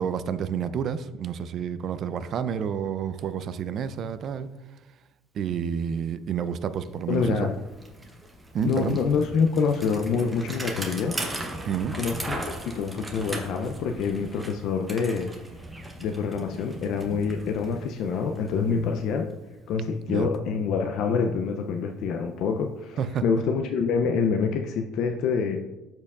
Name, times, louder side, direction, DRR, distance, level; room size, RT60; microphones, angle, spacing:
voice 1, 0.0-4.5 5.3-7.5 8.5-9.0 11.7-12.0 18.7-18.8 20.1-20.3 23.0-23.2, right 7 dB, 40° right, 0.4 m, -29 dB
Bicycle, 6.4-6.5 6.7-19.6, right 1 dB, 10° right, 0.8 m, -38 dB
voice 2, 7.1-7.5 8.6-11.2 11.9-12.4 12.6-15.3 16.0-19.3 19.7-25.6, left 5 dB, 55° left, 0.4 m, -26 dB
12.5 x 4.5 x 2.4 m
cardioid pair, 145°, 0 cm